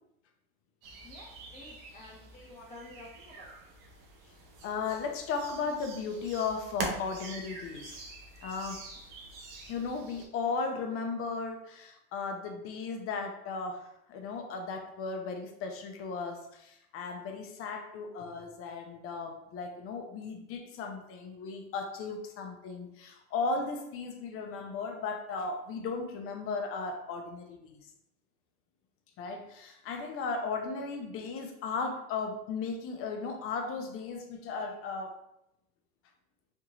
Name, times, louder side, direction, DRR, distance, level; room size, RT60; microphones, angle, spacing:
sound 1, 0.8-10.3, right 3 dB, 70° right, 0.8 m, -44 dB
voice 1, 1.0-3.6, left 2 dB, 20° left, -3 dB, 0.9 m, -50 dB
voice 2, 4.6-8.0 8.4-8.8 9.7-27.9 29.2-35.2, left 4 dB, 45° left, 4 dB, 0.7 m, -36 dB
3.5 x 2.5 x 2.9 m, 0.83 s
supercardioid pair, 105°, 30 cm